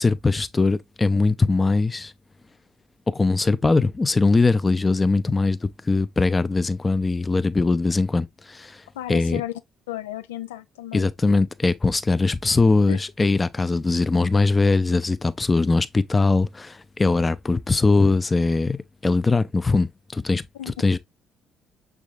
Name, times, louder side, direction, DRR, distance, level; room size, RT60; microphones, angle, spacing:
voice 1, 0.0-2.1 3.1-8.8 9.1-9.4 10.9-21.0, left 3 dB, 25° left, 0.6 m, -21 dB
voice 2, 9.0-9.5 9.9-11.1 12.9-13.0 20.5-20.7, left 13 dB, 85° left, 0.4 m, -33 dB
6.2 x 3.5 x 2.4 m
hypercardioid pair, 50°, 0 cm